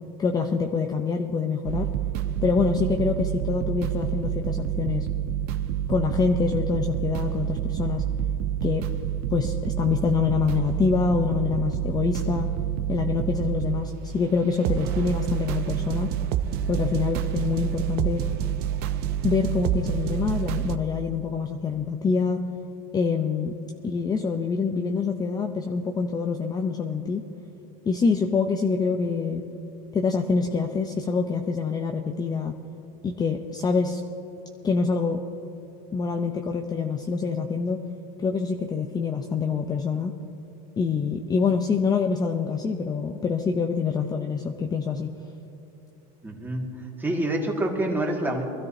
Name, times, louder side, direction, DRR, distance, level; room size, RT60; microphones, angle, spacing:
voice 1, 0.2-1.9 2.4-5.1 5.9-8.0 8.6-8.9 9.3-12.5 12.9-16.1 16.7-18.2 19.2-22.4 22.9-23.5 23.8-27.2 27.8-29.5 29.9-32.5 33.0-34.0 34.6-35.2 35.9-37.8 38.2-40.1 40.8-45.1, left 5 dB, 20° left, 4 dB, 0.6 m, -25 dB
sound 1, 1.7-20.8, right 11 dB, 55° right, 0.7 m, -28 dB
voice 2, 46.2-46.7 47.0-48.4, right 1 dB, 10° right, 0 dB, 2.0 m, -27 dB
23.5 x 13.0 x 2.8 m, 2.8 s
supercardioid pair, 125°, 19 cm